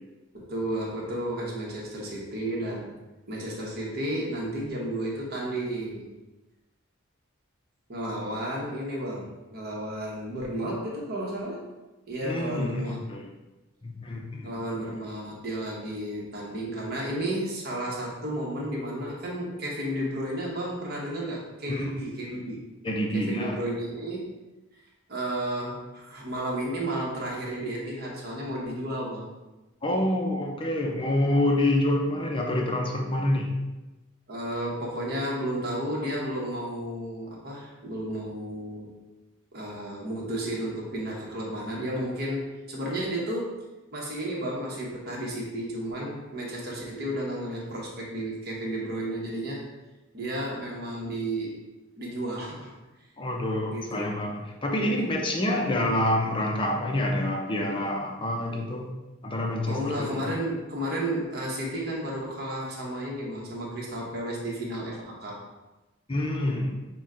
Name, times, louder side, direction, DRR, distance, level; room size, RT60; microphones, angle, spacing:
voice 1, 0.3-2.9 3.3-6.1 7.9-11.6 12.1-13.0 14.4-22.6 23.1-24.3 25.1-29.3 34.3-38.9 39.5-43.6 43.9-49.6 50.1-51.6 52.0-52.7 53.7-54.2 54.8-55.0 59.7-65.4, right 1 dB, 50° right, -3 dB, 1.1 m, -32 dB
voice 2, 12.2-13.3 13.8-14.5 21.7-21.9 22.3-22.5 22.8-23.6 29.8-33.5 53.2-58.9 59.2-60.3 66.1-66.7, left 1 dB, 25° left, 1 dB, 0.6 m, -27 dB
6.0 x 2.2 x 3.7 m, 1.1 s
head